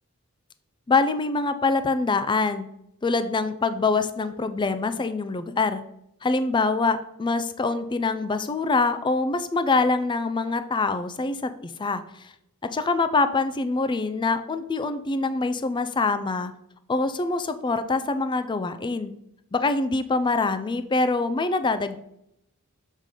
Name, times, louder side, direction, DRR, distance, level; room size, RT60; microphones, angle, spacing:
voice 1, 0.9-2.7 3.0-5.8 6.2-12.3 12.6-16.5 16.9-19.1 19.5-22.0, left 3 dB, 20° left, 11 dB, 0.4 m, -24 dB
7.3 x 3.8 x 4.9 m, 0.77 s
head